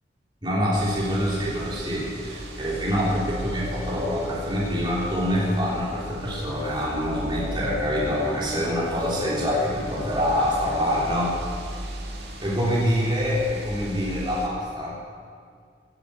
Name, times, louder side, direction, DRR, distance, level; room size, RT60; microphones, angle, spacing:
voice 1, 0.4-11.5 12.4-15.1, equal, 25° right, -6 dB, 3.5 m, -25 dB
sound 1, 0.7-14.5, equal, 65° right, 2.3 m, -37 dB
16.5 x 9.9 x 8.6 m, 2.2 s
head